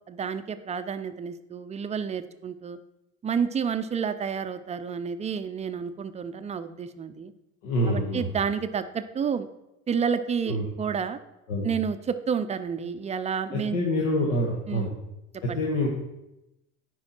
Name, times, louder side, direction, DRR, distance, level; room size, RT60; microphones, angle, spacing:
voice 1, 0.1-2.8 3.2-7.3 7.9-9.5 9.9-11.2 11.6-13.8 14.7-14.9 15.5-15.6, right 6 dB, 20° right, 11 dB, 0.4 m, -30 dB
voice 2, 7.6-8.3 10.5-10.6 11.5-11.7 13.5-14.9 15.4-15.9, left 1 dB, 90° left, -2 dB, 1.5 m, -26 dB
9.7 x 4.8 x 4.3 m, 0.91 s
supercardioid pair, 110°, 37 cm